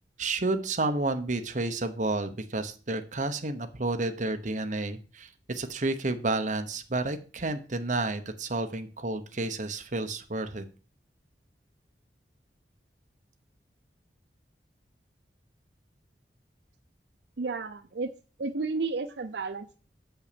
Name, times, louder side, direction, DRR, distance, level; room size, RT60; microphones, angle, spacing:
voice 1, 0.2-10.6, right 2 dB, 45° right, 7 dB, 1.0 m, -31 dB
voice 2, 17.4-18.1 18.4-19.8, right 4 dB, 75° right, 9 dB, 0.6 m, -32 dB
7.1 x 5.7 x 6.8 m, 0.37 s
head